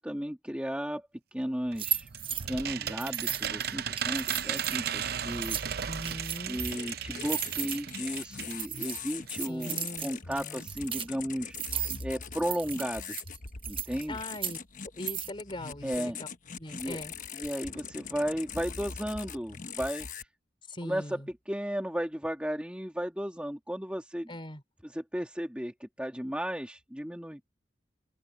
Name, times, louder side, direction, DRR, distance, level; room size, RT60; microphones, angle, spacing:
voice 1, 0.0-2.1 2.5-5.6 6.5-11.6 12.0-13.2 13.7-14.2 15.8-16.2 16.7-17.0 17.3-20.3 20.8-21.2 21.5-24.3 24.8-27.4, equal, 5° right, 1.8 m, -34 dB
sound 1, 1.7-8.6 8.9-9.0 9.3-9.4, right 8 dB, 60° right, 0.7 m, -35 dB
sound 2, 1.8-2.5 3.0-4.8 5.3-6.8 7.2-11.1 11.5-12.0 12.3-14.6 15.1-15.3, right 9 dB, 30° right, 1.1 m, -35 dB
voice 2, 5.8-6.6 9.4-10.7 14.1-14.6 14.9-16.3 16.6-17.1 20.7-21.3 24.3-24.6, left 1 dB, 30° left, 4.5 m, -41 dB
sound 3, 6.5-20.2, left 6 dB, 50° left, 1.1 m, -42 dB
open air
head